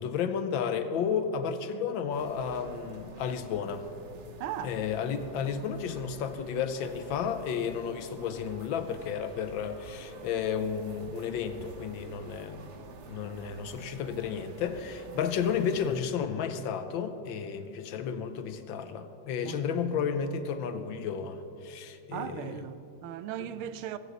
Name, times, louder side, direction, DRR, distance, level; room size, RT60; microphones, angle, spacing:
voice 1, 0.0-3.9 4.6-12.7 13.1-22.6 23.4-23.5, left 7 dB, 75° left, 1.4 m, -32 dB
sound 1, 2.1-16.0, right 3 dB, 60° right, 0.7 m, -49 dB
voice 2, 4.4-4.8 19.4-20.1 22.1-24.0, right 10 dB, 85° right, 1.5 m, -38 dB
16.0 x 16.0 x 4.0 m
omnidirectional pair, 2.3 m